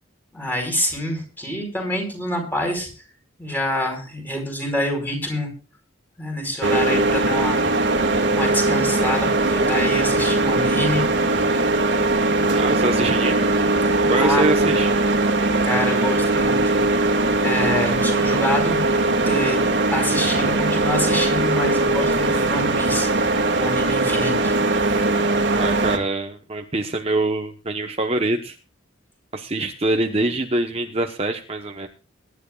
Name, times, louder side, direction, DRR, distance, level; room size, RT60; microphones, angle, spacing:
voice 1, 0.3-2.9 3.4-5.5 6.2-7.6 8.3-11.1 14.1-14.5 15.3-16.8 17.4-19.6 19.9-23.3 23.6-24.6, left 1 dB, 10° left, 2 dB, 4.6 m, -26 dB
sound 1, 6.6-26.0, right 2 dB, 60° right, 2.0 m, -20 dB
voice 2, 12.5-13.5 14.1-14.9 25.5-28.6 29.3-31.9, right 2 dB, 30° right, 5 dB, 1.0 m, -24 dB
22.5 x 11.0 x 2.4 m, 0.35 s
head